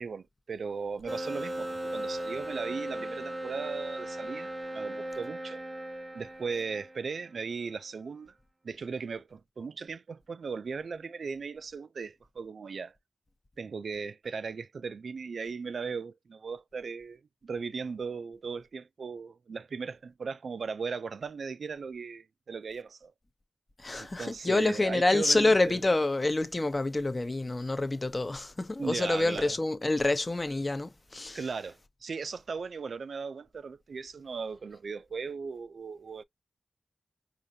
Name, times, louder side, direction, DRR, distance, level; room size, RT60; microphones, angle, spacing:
voice 1, 0.0-5.6 6.1-8.3 8.6-12.9 13.6-23.1 24.0-25.8 28.8-29.6 31.3-36.2, right 5 dB, 80° right, 0.3 m, -37 dB
sound 1, 1.1-7.5, right 1 dB, 25° right, 0.7 m, -37 dB
voice 2, 23.8-31.6, left 2 dB, 30° left, 0.7 m, -27 dB
5.0 x 2.5 x 2.6 m
wide cardioid pair, 95°, 0 cm